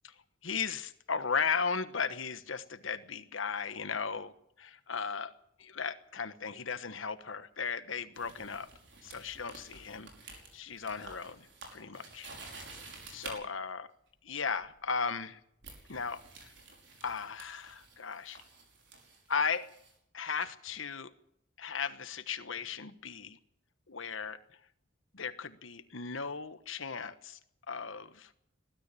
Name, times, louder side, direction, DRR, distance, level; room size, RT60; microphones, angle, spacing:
voice 1, 0.4-4.3 4.6-5.3 5.6-8.7 9.0-12.3 13.1-13.9 14.2-15.4 15.9-16.5 17.0-18.4 19.3-19.7 20.1-21.1 21.6-23.4 23.9-24.6 25.1-27.4 27.7-28.3, left 5 dB, 80° left, 12 dB, 1.3 m, -36 dB
sound 1, 8.1-13.4 14.6-14.9 15.6-19.9, right 3 dB, 60° right, 5.5 m, -51 dB
20.5 x 13.0 x 9.8 m, 0.74 s
head